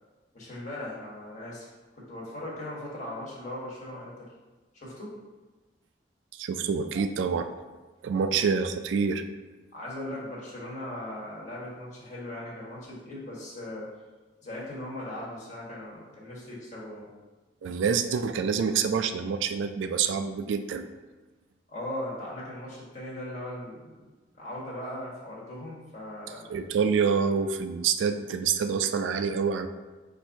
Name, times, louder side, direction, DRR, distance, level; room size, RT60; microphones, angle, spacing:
voice 1, 0.3-1.7 1.9-4.3 4.7-5.1 8.2-8.4 9.7-13.9 14.4-17.1 21.7-23.9 24.3-26.5, left 1 dB, 40° left, -5 dB, 1.3 m, -39 dB
voice 2, 6.4-7.5 8.0-9.2 17.6-20.9 26.5-29.7, right 6 dB, 85° right, 8 dB, 0.3 m, -27 dB
4.3 x 2.6 x 4.5 m, 1.2 s
head